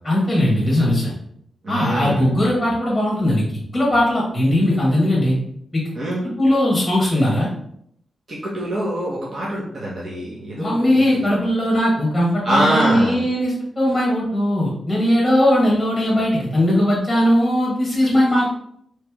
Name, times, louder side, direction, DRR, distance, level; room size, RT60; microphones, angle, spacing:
voice 1, 0.0-1.1 1.7-3.4 3.7-5.4 5.7-5.8 6.4-7.5 10.6-18.5, left 1 dB, 5° left, -5 dB, 1.5 m, -19 dB
voice 2, 1.6-2.3 5.9-6.2 8.3-11.3 12.4-13.2, right 1 dB, 45° right, -7 dB, 1.1 m, -24 dB
3.3 x 3.1 x 4.6 m, 0.70 s
wide cardioid pair, 165°, 0 cm